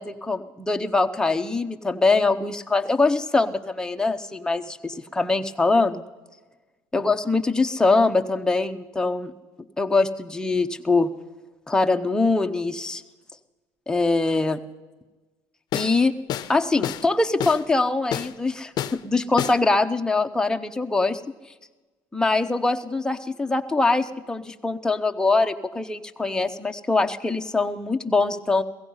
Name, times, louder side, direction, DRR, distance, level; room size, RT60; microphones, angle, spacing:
voice 1, 0.0-6.0 6.9-9.3 9.8-11.1 11.7-13.0 13.9-14.6 15.7-16.1 16.5-21.2 22.1-28.6, left 3 dB, 10° left, 6 dB, 0.8 m, -23 dB
sound 1, 15.7-16.0 16.3-16.5 16.8-17.1 17.4-17.6 18.1-18.3 18.8-19.0 19.4-19.6, left 11 dB, 55° left, 0.6 m, -28 dB
16.5 x 15.5 x 5.5 m, 1.2 s
cardioid pair, 105°, 8 cm